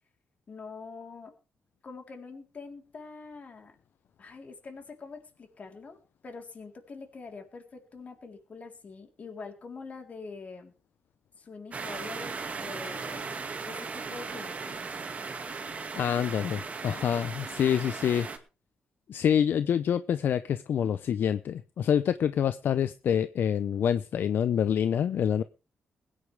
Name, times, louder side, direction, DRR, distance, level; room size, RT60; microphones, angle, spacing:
voice 1, 0.5-1.3 1.8-3.8 4.2-6.0 6.2-10.7 11.4-13.2 13.6-14.9 20.8-20.9, left 4 dB, 45° left, 3.9 m, -44 dB
sound 1, 11.7-18.4, right 4 dB, 40° right, 2.2 m, -37 dB
voice 2, 16.0-18.3 19.1-25.4, left 8 dB, 65° left, 0.6 m, -26 dB
21.0 x 10.0 x 3.5 m
cardioid pair, 105°, 4 cm